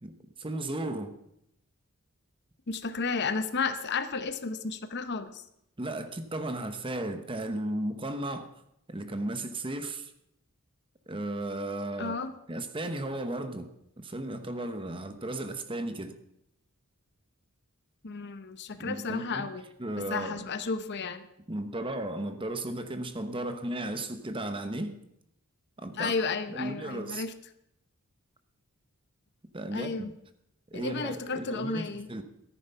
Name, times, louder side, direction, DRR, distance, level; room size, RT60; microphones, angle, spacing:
voice 1, 0.0-1.2 5.8-8.5 8.9-10.1 11.1-12.2 12.5-13.7 14.0-16.2 18.8-19.5 19.8-20.5 21.5-25.0 25.8-26.1 26.5-27.2 29.5-30.1 30.7-32.2, right 1 dB, 25° right, 9 dB, 0.9 m, -35 dB
voice 2, 2.7-5.4 12.0-12.3 18.0-19.6 20.0-21.3 26.0-27.3 29.7-30.1 30.7-32.1, left 4 dB, 50° left, 11 dB, 0.8 m, -32 dB
14.0 x 9.6 x 5.7 m, 0.79 s
head